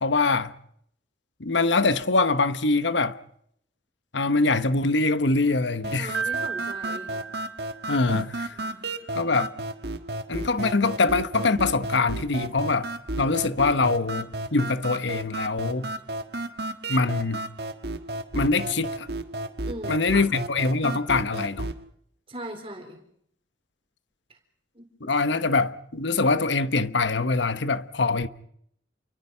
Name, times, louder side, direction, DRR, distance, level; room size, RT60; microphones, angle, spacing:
voice 1, 0.0-0.5 1.4-3.1 4.1-6.1 7.9-8.5 9.1-9.5 10.3-12.9 13.2-15.9 16.9-17.4 18.3-19.1 19.9-21.7 25.0-28.3, left 3 dB, 75° left, 1.1 m, -24 dB
sound 1, 5.8-21.8, right 1 dB, 55° right, 1.5 m, -33 dB
voice 2, 6.0-7.1 8.5-8.9 19.6-20.2 22.3-23.0 24.7-25.1, right 1 dB, 30° right, 4.0 m, -39 dB
Piano, 6.1-8.2, right 6 dB, 75° right, 0.9 m, -33 dB
29.0 x 24.0 x 5.7 m
head